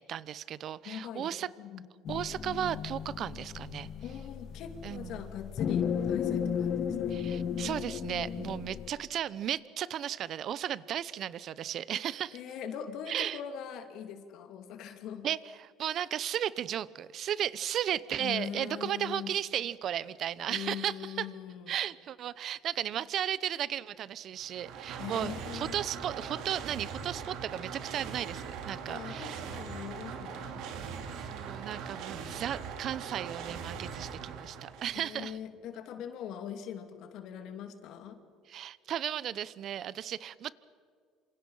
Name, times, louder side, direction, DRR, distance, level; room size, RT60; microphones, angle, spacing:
voice 1, 0.1-1.5 2.1-3.9 4.8-5.3 7.1-12.4 13.1-13.4 15.2-21.3 21.7-29.4 31.1-35.4 38.5-40.5, right 10 dB, 55° right, 19 dB, 0.9 m, -35 dB
voice 2, 0.8-1.9 4.0-7.2 12.3-15.3 18.2-19.3 20.5-21.7 25.0-25.8 28.9-30.6 34.9-38.2, left 8 dB, 65° left, 7 dB, 2.6 m, -41 dB
sound 1, 2.1-8.9, left 8 dB, 50° left, 1.8 m, -34 dB
sound 2, 24.4-35.2, right 6 dB, 75° right, 3.3 m, -41 dB
27.5 x 27.0 x 5.6 m, 2.1 s
cardioid pair, 115°, 0 cm